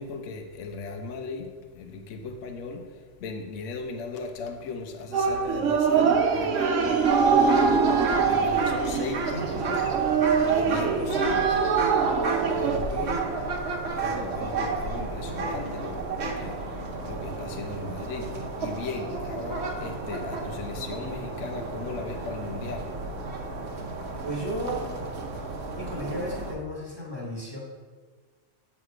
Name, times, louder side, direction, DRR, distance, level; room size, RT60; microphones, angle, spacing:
voice 1, 0.0-7.3 8.2-11.7 12.5-13.2 13.7-23.0 23.5-23.7, left 3 dB, 80° left, 4 dB, 1.0 m, -37 dB
sound 1, 5.1-12.8, right 5 dB, 90° right, 1.0 m, -24 dB
sound 2, 7.0-26.5, right 4 dB, 60° right, 1.0 m, -31 dB
voice 2, 12.6-13.2 24.2-24.9 25.8-27.6, equal, 20° right, -5 dB, 1.3 m, -34 dB
7.9 x 3.3 x 4.7 m, 1.5 s
omnidirectional pair, 1.3 m